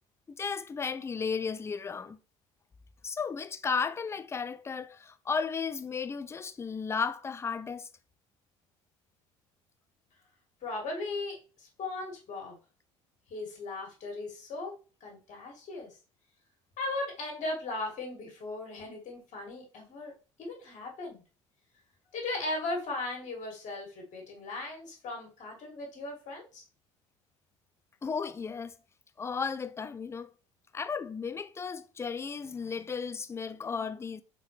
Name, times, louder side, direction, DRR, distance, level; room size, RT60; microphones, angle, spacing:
voice 1, 0.3-2.2 3.0-7.9 28.0-28.7 29.2-30.3 30.7-34.2, left 5 dB, 15° left, 0.4 m, -34 dB
voice 2, 10.6-12.6 13.3-14.7 15.0-15.9 16.8-20.1 20.4-21.2 22.1-26.6, left 2 dB, 45° left, 1.8 m, -37 dB
4.2 x 3.8 x 3.1 m
figure-of-eight pair, 60°, 17 cm